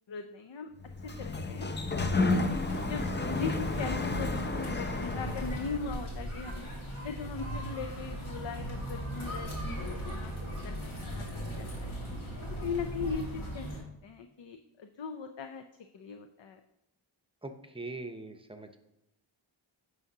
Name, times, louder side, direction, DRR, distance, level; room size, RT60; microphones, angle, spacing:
voice 1, 0.1-0.7 1.0-1.7 2.1-2.5 2.7-6.7 7.0-10.3 10.6-11.3 11.6-11.9 12.6-13.7 14.0-15.6 15.9-16.6, left 5 dB, 65° left, 7 dB, 0.6 m, -39 dB
Sliding door, 0.8-5.9, left 2 dB, 25° left, 0.6 m, -31 dB
sound 1, 2.3-13.8, equal, 80° left, 2.1 m, -38 dB
voice 2, 17.4-18.8, right 2 dB, 10° right, 7 dB, 0.7 m, -42 dB
9.6 x 5.7 x 2.8 m, 0.88 s
wide cardioid pair, 60°, 48 cm